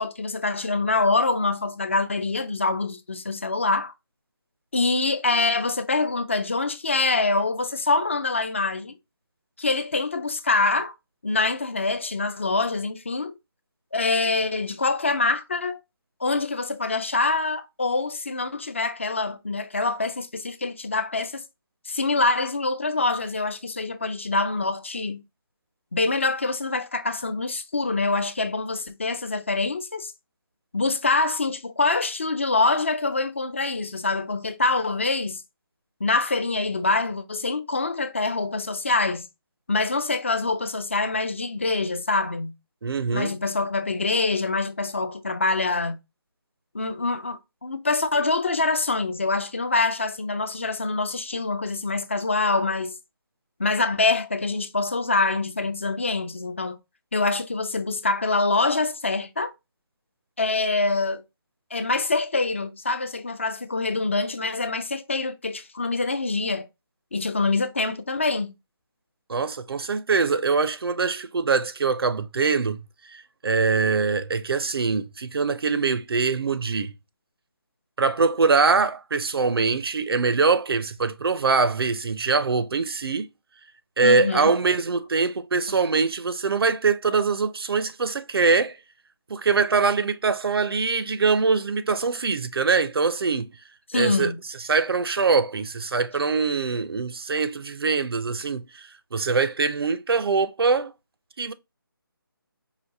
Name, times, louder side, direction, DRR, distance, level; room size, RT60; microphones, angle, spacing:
voice 1, 0.0-3.9 4.7-8.9 9.6-10.9 11.2-13.3 13.9-15.8 16.2-21.4 21.9-25.2 25.9-30.1 30.7-35.4 36.0-39.3 39.7-42.5 43.1-46.0 46.7-53.0 53.6-56.8 57.1-59.5 60.4-61.2 61.7-66.7 67.1-68.5 84.0-84.5 93.9-94.4, left 3 dB, 30° left, 0.4 m, -25 dB
voice 2, 42.8-43.3 69.3-72.8 73.1-76.9 78.0-83.3 84.0-88.8 89.3-93.5 93.9-100.9 101.4-101.5, right 4 dB, 85° right, 0.6 m, -23 dB
4.9 x 2.6 x 2.7 m
hypercardioid pair, 175°, 12 cm